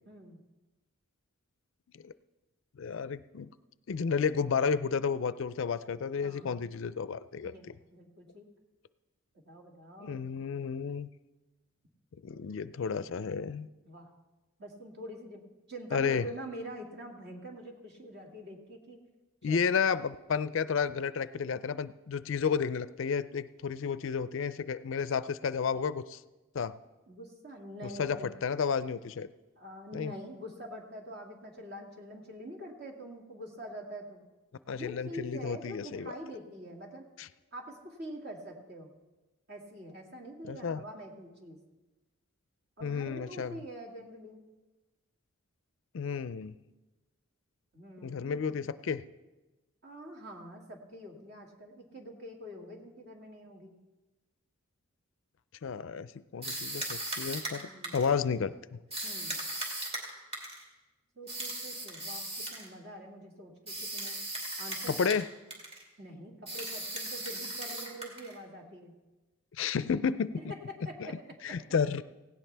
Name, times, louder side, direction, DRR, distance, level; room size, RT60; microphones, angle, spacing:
voice 1, 0.1-0.4 6.2-6.6 7.4-8.5 9.3-10.2 13.9-14.1 14.6-19.0 19.4-19.7 27.1-28.3 29.6-34.2 34.7-37.1 37.5-38.9 39.5-41.6 42.8-44.4 47.7-48.6 49.8-53.7 57.6-58.0 59.0-59.4 61.2-64.2 64.6-65.1 66.0-68.9 70.4-71.6, equal, 50° right, 1 dB, 2.1 m, -45 dB
voice 2, 2.8-3.5 3.9-7.7 10.0-11.1 12.2-13.7 15.9-16.3 19.4-26.2 26.5-26.7 28.0-29.3 29.9-30.1 34.7-36.1 37.2-37.3 40.4-40.8 42.8-43.5 45.9-46.5 48.0-49.0 55.6-58.5 64.9-65.3 69.6-70.4 71.0-71.1 71.4-72.0, left 6 dB, 60° left, 15 dB, 0.4 m, -32 dB
sound 1, 56.4-58.2 58.9-60.6 61.3-62.7 63.7-65.3 65.5-65.8 66.5-68.4, right 1 dB, 25° right, 2.6 m, -37 dB
17.5 x 16.5 x 3.4 m, 1.1 s
head